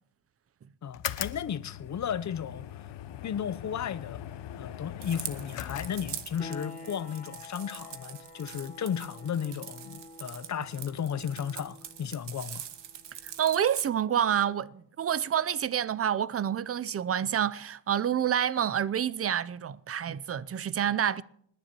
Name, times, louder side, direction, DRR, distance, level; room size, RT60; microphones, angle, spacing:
voice 1, 0.8-2.9 3.2-4.2 4.6-12.6, left 8 dB, 40° left, 0.7 m, -34 dB
sound 1, 0.9-6.5, left 11 dB, 70° left, 0.9 m, -40 dB
sound 2, 5.0-13.8, right 10 dB, 65° right, 1.2 m, -44 dB
sound 3, 6.4-16.9, left 3 dB, 20° left, 3.3 m, -50 dB
voice 2, 13.4-21.2, right 9 dB, 30° right, 0.5 m, -28 dB
27.0 x 10.0 x 2.9 m
cardioid pair, 85°, 45 cm